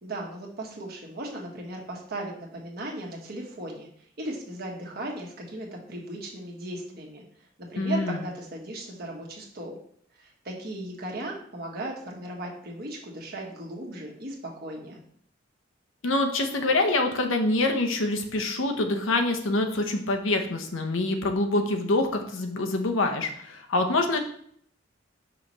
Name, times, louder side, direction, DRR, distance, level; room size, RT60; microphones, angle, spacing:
voice 1, 0.0-3.9 4.2-7.2 7.6-9.8 10.1-15.0, right 1 dB, 50° right, -1 dB, 1.3 m, -37 dB
voice 2, 7.8-8.2 16.0-24.2, left 2 dB, 90° left, 5 dB, 0.9 m, -25 dB
5.6 x 3.1 x 5.4 m, 0.63 s
head